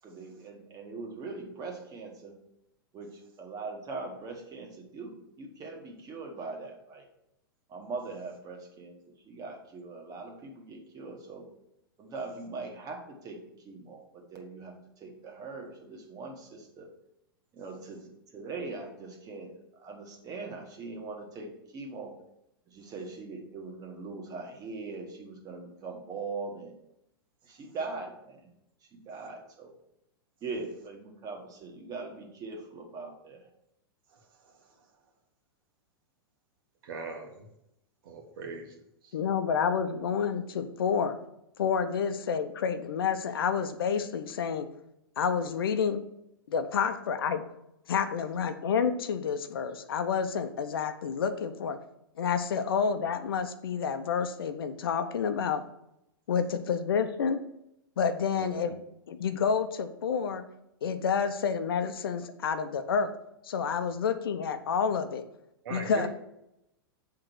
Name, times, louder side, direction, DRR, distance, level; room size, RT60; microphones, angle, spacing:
voice 1, 0.0-2.4 2.9-7.1 7.7-11.5 12.0-16.9 17.5-22.1 22.7-26.8 27.4-28.5 28.9-29.7 30.4-33.4, right 3 dB, 30° right, 2 dB, 1.8 m, -41 dB
voice 2, 36.8-37.5 38.0-38.8 39.0-39.1 58.3-58.7 65.6-66.1, right 4 dB, 65° right, 2 dB, 1.8 m, -40 dB
voice 3, 39.1-41.2 41.6-44.7 45.2-46.1 46.5-47.4 47.9-51.8 52.2-55.6 56.3-57.4 58.0-58.7 59.1-60.4 60.8-63.1 63.4-65.2 65.7-66.1, left 6 dB, 75° left, 9 dB, 0.8 m, -29 dB
7.6 x 3.8 x 6.2 m, 0.82 s
hypercardioid pair, 105°, 12 cm